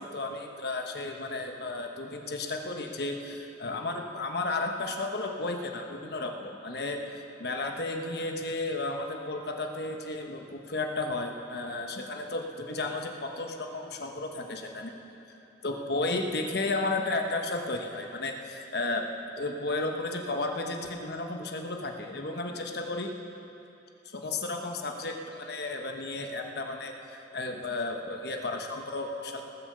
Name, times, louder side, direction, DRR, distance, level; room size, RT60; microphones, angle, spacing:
voice 1, 0.0-14.9 15.6-19.1 19.4-23.1 24.1-29.4, left 2 dB, 60° left, 3 dB, 1.2 m, -33 dB
19.5 x 7.2 x 6.8 m, 3.0 s
head